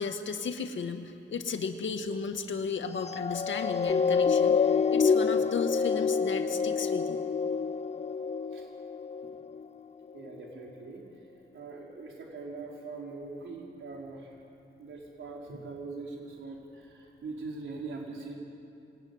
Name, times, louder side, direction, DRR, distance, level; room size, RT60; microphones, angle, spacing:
voice 1, 0.0-7.2, left 5 dB, 70° left, 6 dB, 2.0 m, -34 dB
sound 1, 3.0-9.6 10.2-10.4, left 5 dB, 35° left, 0.6 m, -27 dB
voice 2, 10.1-11.2 11.5-14.4 14.8-18.3, right 3 dB, 75° right, -1 dB, 4.5 m, -42 dB
26.5 x 20.5 x 9.7 m, 2.8 s
wide cardioid pair, 140°, 20 cm